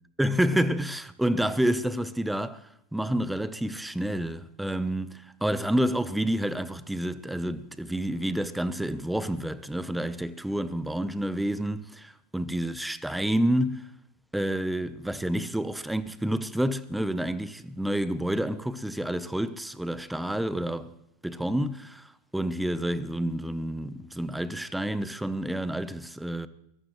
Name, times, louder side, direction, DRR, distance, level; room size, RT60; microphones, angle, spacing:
voice 1, 0.2-2.6 2.9-13.9 14.3-20.9 21.2-26.5, right 1 dB, 5° right, 0.8 m, -29 dB
22.5 x 15.0 x 3.1 m
hypercardioid pair, 90°, 0 cm